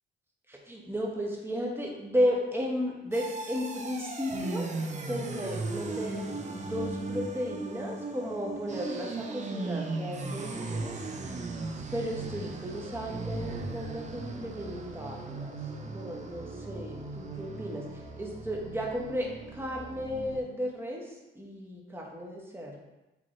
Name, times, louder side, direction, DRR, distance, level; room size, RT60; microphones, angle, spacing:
voice 1, 0.5-4.6 5.1-11.0 11.9-15.6 15.9-17.9 18.2-22.8, equal, 10° right, -1 dB, 1.4 m, -34 dB
sound 1, 3.1-20.4, right 3 dB, 35° right, 0.8 m, -37 dB
7.6 x 3.7 x 3.3 m, 1.0 s
cardioid pair, 90°, 20 cm